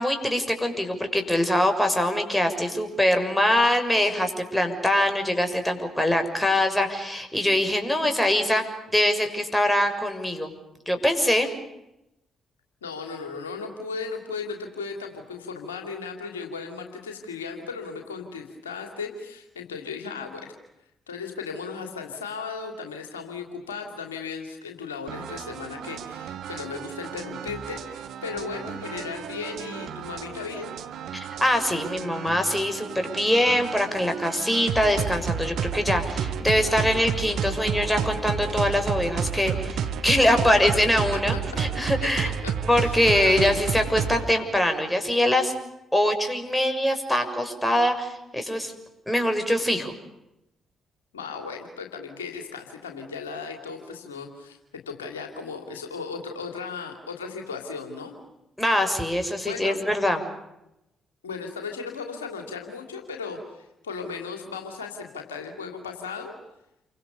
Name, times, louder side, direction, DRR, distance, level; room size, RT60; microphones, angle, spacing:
voice 1, 0.0-8.6 8.9-10.5 10.9-11.5 31.1-42.3 42.7-45.5 45.9-48.7 49.1-49.9 58.6-60.2, left 1 dB, 10° left, 6 dB, 6.5 m, -23 dB
voice 2, 12.8-20.5 21.1-30.7 42.4-43.6 51.1-54.6 54.9-58.2 59.4-59.8 61.2-66.3, left 5 dB, 85° left, 4 dB, 2.9 m, -36 dB
sound 1, 25.1-44.3, right 7 dB, 65° right, 1.8 m, -31 dB
29.0 x 25.0 x 6.9 m, 0.88 s
hypercardioid pair, 40°, 0 cm